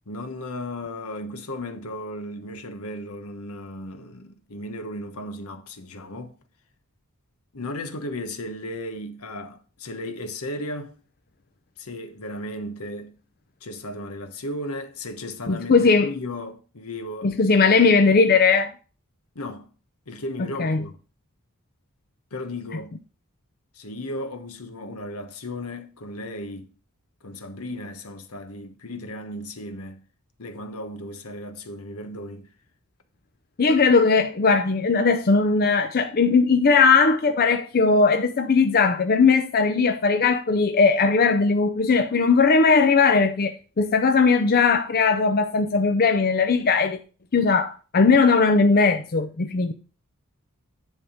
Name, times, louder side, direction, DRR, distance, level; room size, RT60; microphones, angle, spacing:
voice 1, 0.1-6.4 7.5-11.0 11.8-13.1 13.6-18.0 19.3-19.7 20.1-21.0 22.3-22.9 23.7-26.7 27.2-30.0 30.4-32.5, left 1 dB, 75° left, 1.1 m, -35 dB
voice 2, 15.5-16.1 17.2-18.7 20.6-20.8 33.6-47.0 47.3-49.7, left 4 dB, 45° left, 0.5 m, -19 dB
9.8 x 3.6 x 6.3 m
head